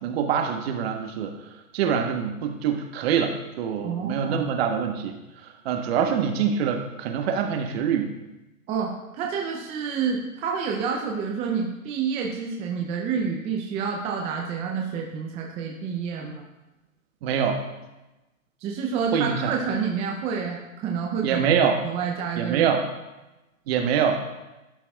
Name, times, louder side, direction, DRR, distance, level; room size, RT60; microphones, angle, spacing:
voice 1, 0.0-1.4 1.7-8.2 17.2-17.6 19.1-19.5 21.2-21.8 22.4-22.8 23.7-24.2, right 7 dB, 45° right, 5 dB, 1.2 m, -25 dB
voice 2, 3.8-4.4 6.0-6.1 8.7-16.4 18.6-21.5 21.8-22.7, right 6 dB, 15° right, 0 dB, 0.5 m, -28 dB
12.0 x 5.8 x 2.3 m, 1.0 s
hypercardioid pair, 130°, 42 cm